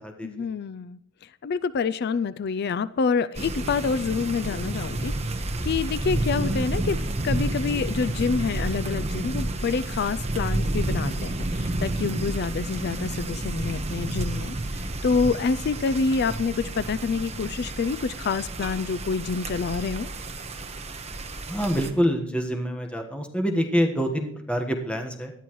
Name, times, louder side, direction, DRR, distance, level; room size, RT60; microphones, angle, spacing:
voice 1, 0.2-1.0 1.4-5.1 5.6-20.1, left 5 dB, 50° left, 17 dB, 0.4 m, -27 dB
sound 1, 3.3-21.9, right 2 dB, 30° right, 1.2 m, -30 dB
voice 2, 21.5-25.3, equal, 5° left, 3 dB, 1.3 m, -26 dB
18.5 x 12.5 x 3.1 m, 0.72 s
head